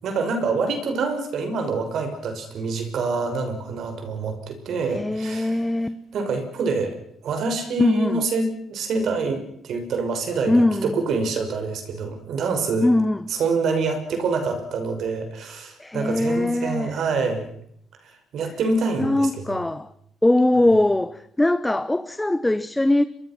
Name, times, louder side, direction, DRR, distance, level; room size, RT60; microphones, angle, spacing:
voice 1, 0.0-5.6 6.1-12.9 13.3-17.5 18.0-19.6, right 4 dB, 70° right, 6.0 m, -26 dB
voice 2, 4.9-5.9 7.8-8.2 10.5-11.0 12.8-13.2 15.8-17.0 19.0-19.9 20.2-23.0, left 1 dB, 10° left, 1.1 m, -21 dB
26.0 x 24.0 x 6.1 m
cardioid pair, 90°, 0 cm